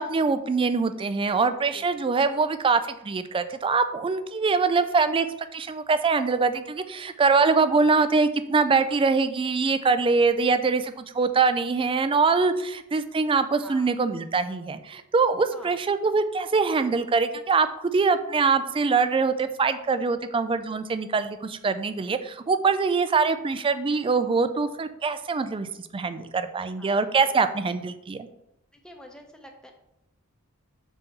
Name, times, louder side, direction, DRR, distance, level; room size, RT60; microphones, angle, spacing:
voice 1, 0.0-5.3 5.5-28.3, right 4 dB, 25° right, 11 dB, 0.3 m, -23 dB
voice 2, 28.8-29.7, equal, 5° left, 3 dB, 0.7 m, -46 dB
6.8 x 4.0 x 3.7 m, 0.84 s
head